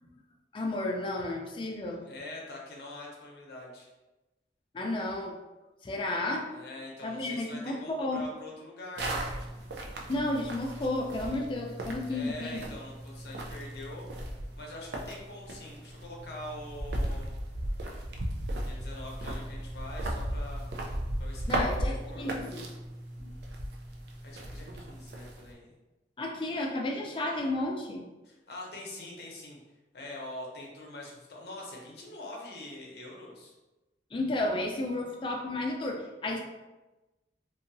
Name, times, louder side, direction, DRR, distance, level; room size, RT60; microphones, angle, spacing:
voice 1, 0.5-2.0 4.7-5.3 5.8-6.5 7.0-8.2 10.1-12.6 21.5-22.7 23.2-23.3 26.2-28.0 34.1-36.4, left 2 dB, 30° left, 1 dB, 0.3 m, -32 dB
voice 2, 2.1-3.9 6.5-9.3 12.0-14.1 14.6-17.3 18.6-20.6 21.2-22.3 24.2-25.7 28.2-29.6 29.9-33.5, left 1 dB, 60° left, -2 dB, 0.6 m, -44 dB
sound 1, 9.0-25.5, right 1 dB, 65° right, 0.4 m, -36 dB
2.7 x 2.3 x 2.5 m, 1.1 s
head